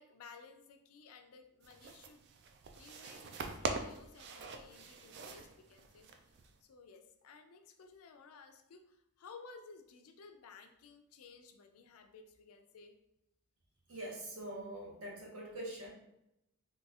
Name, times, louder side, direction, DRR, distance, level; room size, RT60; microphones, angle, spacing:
voice 1, 0.0-2.3 2.7-6.1 6.6-13.0, left 4 dB, 75° left, 6 dB, 0.4 m, -56 dB
sound 1, 1.6-6.6, right 3 dB, 50° right, 0.3 m, -44 dB
voice 2, 13.9-15.9, right 1 dB, 75° right, -1 dB, 0.9 m, -44 dB
3.7 x 2.3 x 2.7 m, 0.83 s
head